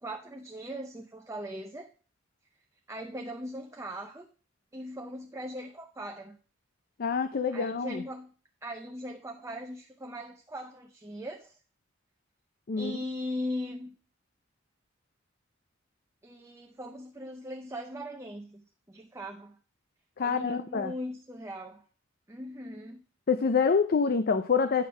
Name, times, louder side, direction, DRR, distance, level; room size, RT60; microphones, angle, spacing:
voice 1, 0.0-1.9 2.9-4.3 4.7-6.4 7.5-8.3 8.6-11.6 12.8-13.9 16.2-19.6 20.2-21.8 22.3-23.0, equal, 15° right, 2 dB, 0.7 m, -39 dB
voice 2, 7.0-8.0 12.7-13.0 20.2-20.9 23.3-24.9, left 5 dB, 50° left, 10 dB, 0.5 m, -26 dB
9.4 x 4.1 x 6.0 m, 0.38 s
head